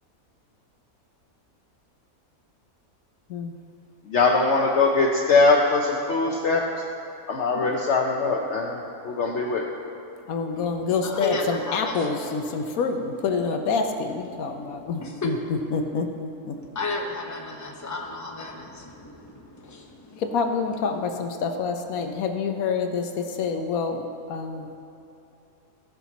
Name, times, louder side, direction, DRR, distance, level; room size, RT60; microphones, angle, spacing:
voice 1, 4.1-6.6 7.3-9.6, left 3 dB, 60° left, 0 dB, 0.9 m, -21 dB
voice 2, 10.3-16.6 20.1-24.8, left 5 dB, 80° left, 5 dB, 1.2 m, -27 dB
voice 3, 11.0-12.2 14.5-14.6 15.0-15.3 16.5-20.2, left 2 dB, 15° left, 0 dB, 0.8 m, -33 dB
16.0 x 5.8 x 4.1 m, 2.8 s
omnidirectional pair, 1.5 m